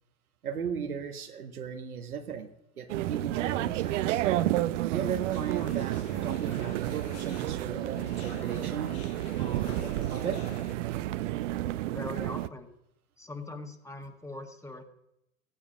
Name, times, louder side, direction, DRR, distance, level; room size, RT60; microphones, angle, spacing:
voice 1, 0.4-2.5 2.8-4.2 4.9-8.9 9.4-10.4, right 7 dB, 85° right, 6 dB, 1.4 m, -37 dB
sound 1, 2.9-12.5, right 14 dB, 60° right, 0.7 m, -31 dB
sound 2, 5.3-10.7, left 8 dB, 50° left, 1.8 m, -48 dB
voice 2, 11.8-12.7 13.2-14.8, left 2 dB, 5° left, 5 dB, 1.5 m, -41 dB
15.5 x 9.8 x 5.1 m, 0.81 s
hypercardioid pair, 95°, 43 cm